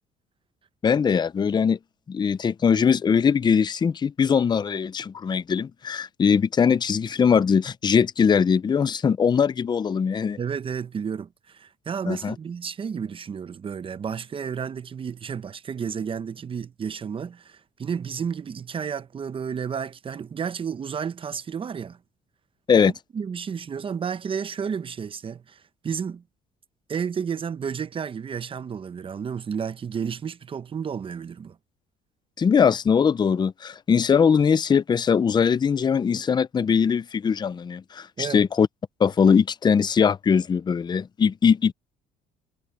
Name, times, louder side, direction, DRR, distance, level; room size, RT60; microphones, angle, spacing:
voice 1, 0.8-1.8 2.1-10.4 12.1-12.3 22.7-22.9 32.4-38.7 39.0-41.7, left 6 dB, 25° left, 0.5 m, -21 dB
voice 2, 10.4-22.0 23.1-26.2 26.9-31.6 38.2-38.4, right 7 dB, 30° right, 0.8 m, -32 dB
cardioid pair, 110°, 17 cm